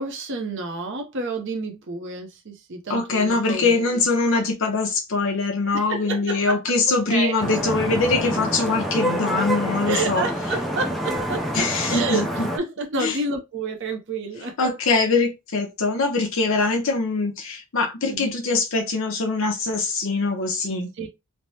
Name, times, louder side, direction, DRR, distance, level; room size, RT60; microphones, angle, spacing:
voice 1, 0.0-4.0 5.7-7.3 9.9-14.7 18.1-18.3 20.9-21.1, right 3 dB, 55° right, 0.6 m, -30 dB
voice 2, 2.9-10.2 11.5-12.5 13.0-13.2 14.6-20.9, left 3 dB, 65° left, 0.7 m, -23 dB
Vehicle horn car horn honking / Traffic noise roadway noise, 7.4-12.6, equal, ahead, 0.4 m, -27 dB
3.3 x 2.0 x 2.7 m
head